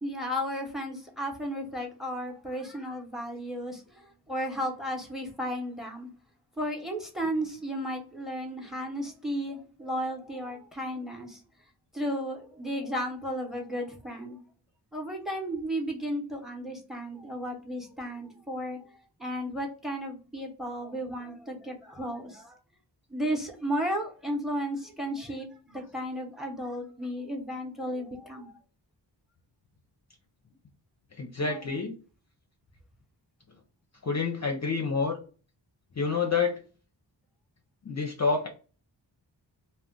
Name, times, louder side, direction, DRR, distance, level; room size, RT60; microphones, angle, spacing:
voice 1, 0.0-6.1 6.6-11.4 11.9-14.4 14.9-18.8 19.2-22.6 23.1-28.5 31.4-31.8, equal, ahead, 2 dB, 0.8 m, -34 dB
voice 2, 31.2-31.9 34.0-35.2 36.0-36.6 37.8-38.5, left 4 dB, 40° left, 2 dB, 0.5 m, -28 dB
2.3 x 2.2 x 3.7 m, 0.37 s
wide cardioid pair, 60°, 44 cm